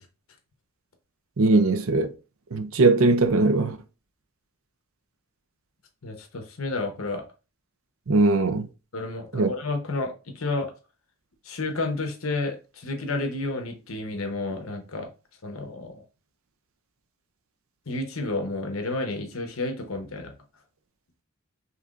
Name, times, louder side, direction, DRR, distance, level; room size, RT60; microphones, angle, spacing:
voice 1, 1.4-2.1 2.5-3.8 8.1-8.7 9.3-9.5, right 3 dB, 75° right, 0.6 m, -20 dB
voice 2, 6.0-7.2 8.9-10.7 11.4-15.1 15.4-16.0 17.9-20.3, left 2 dB, 70° left, 1.0 m, -31 dB
5.7 x 3.2 x 2.5 m
head